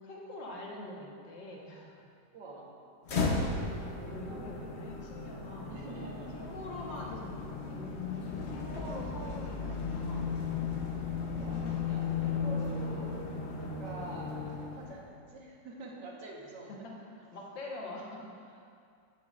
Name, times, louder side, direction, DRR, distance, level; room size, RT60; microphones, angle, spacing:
voice 1, 0.0-2.0 4.1-10.3 12.9-13.1 16.8-18.6, left 1 dB, 85° left, -2 dB, 2.0 m, -45 dB
voice 2, 2.3-2.7 3.9-4.5 5.7-6.5 8.9-9.5 11.3-13.3 13.8-16.8, right 2 dB, 70° right, -2 dB, 1.8 m, -46 dB
sound 1, 3.1-15.1, left 4 dB, 45° left, 0.9 m, -35 dB
16.5 x 6.9 x 2.5 m, 2.4 s
omnidirectional pair, 2.0 m